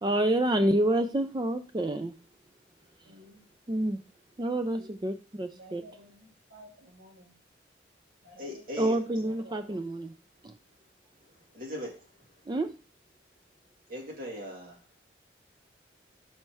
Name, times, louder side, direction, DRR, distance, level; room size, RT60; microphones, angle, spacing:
voice 1, 0.0-2.1 3.7-4.0 4.4-5.8 8.8-10.1 10.4-10.5 12.5-12.7, right 1 dB, 25° right, 9 dB, 0.4 m, -28 dB
voice 2, 3.0-3.5 4.8-4.9 5.5-7.4 8.2-9.9, equal, 70° right, -5 dB, 1.7 m, -53 dB
voice 3, 8.4-9.0 11.5-12.0 13.9-14.8, left 1 dB, 45° right, -2 dB, 2.2 m, -39 dB
6.5 x 4.3 x 4.6 m, 0.35 s
head